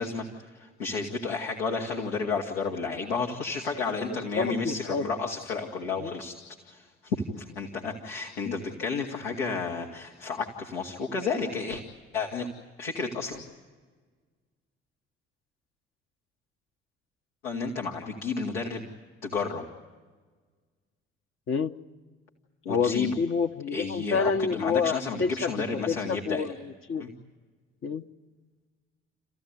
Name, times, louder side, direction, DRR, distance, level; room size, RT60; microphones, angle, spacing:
voice 1, 0.0-6.4 6.6-11.8 12.1-12.5 12.8-13.4 17.4-18.9 19.2-19.6 22.7-23.2 23.7-26.5 27.0-27.1, left 4 dB, 75° left, 0 dB, 1.8 m, -32 dB
voice 2, 4.0-5.0 6.0-6.2 8.4-8.5 21.5-21.7 22.7-27.1 27.8-28.0, left 5 dB, 40° left, 6 dB, 1.1 m, -28 dB
29.5 x 15.0 x 9.5 m, 1.4 s
figure-of-eight pair, 50°, 30 cm